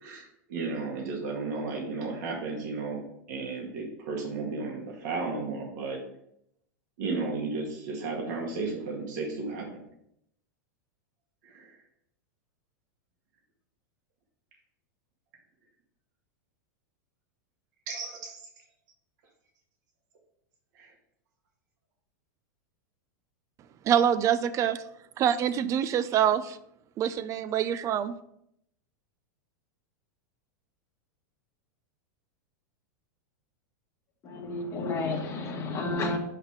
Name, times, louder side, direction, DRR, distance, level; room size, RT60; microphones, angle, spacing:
voice 1, 0.0-6.0 7.0-9.8 11.4-11.8 17.9-18.4 20.8-20.9, right 3 dB, 65° right, 1.9 m, -34 dB
voice 2, 23.9-24.8 25.2-26.6 27.0-28.2, right 9 dB, 30° right, 0.5 m, -25 dB
voice 3, 34.2-36.2, left 3 dB, 30° left, 1.4 m, -31 dB
5.6 x 5.5 x 4.7 m
hypercardioid pair, 125°, 10 cm